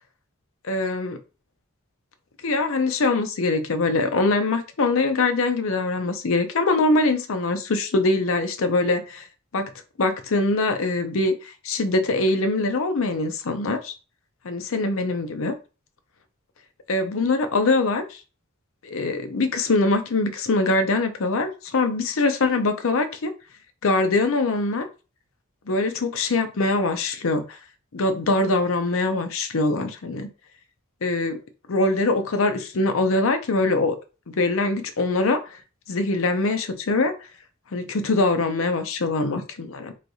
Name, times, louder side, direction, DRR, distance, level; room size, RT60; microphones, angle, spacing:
voice 1, 0.6-1.2 2.4-9.2 9.5-9.7 10.0-11.3 11.6-13.9 14.4-15.6 16.9-18.2 18.8-23.3 23.8-24.9 25.7-27.6 27.9-30.3 31.0-31.4 31.7-34.0 34.4-35.4 35.9-37.1 37.7-39.9, left 2 dB, 70° left, 0.6 m, -23 dB
3.2 x 2.3 x 4.0 m
head